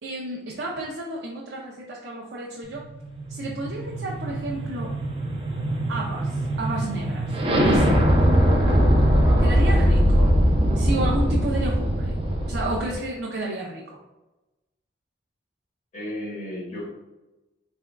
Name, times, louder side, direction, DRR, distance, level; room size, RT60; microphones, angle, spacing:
voice 1, 0.0-2.8 3.3-4.9 5.9-7.9 9.4-10.3 10.8-12.1 12.5-13.8, right 2 dB, 75° right, -3 dB, 0.5 m, -31 dB
sound 1, 2.8-12.9, equal, 30° right, 0.5 m, -21 dB
voice 2, 9.3-10.2 15.9-16.9, left 1 dB, 50° left, -5 dB, 1.3 m, -35 dB
3.5 x 3.4 x 2.2 m, 1.1 s
head